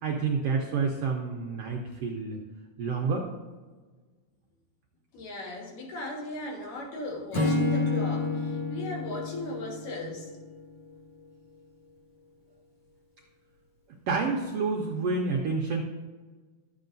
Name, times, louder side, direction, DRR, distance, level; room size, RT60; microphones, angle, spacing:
voice 1, 0.0-2.4 2.8-3.3 14.1-15.8, right 4 dB, 75° right, 0 dB, 1.4 m, -28 dB
voice 2, 5.1-10.3, left 1 dB, 75° left, -1 dB, 3.2 m, -37 dB
Acoustic guitar / Strum, 7.3-10.6, left 2 dB, 40° left, 2.1 m, -29 dB
12.0 x 7.9 x 2.6 m, 1.4 s
omnidirectional pair, 3.9 m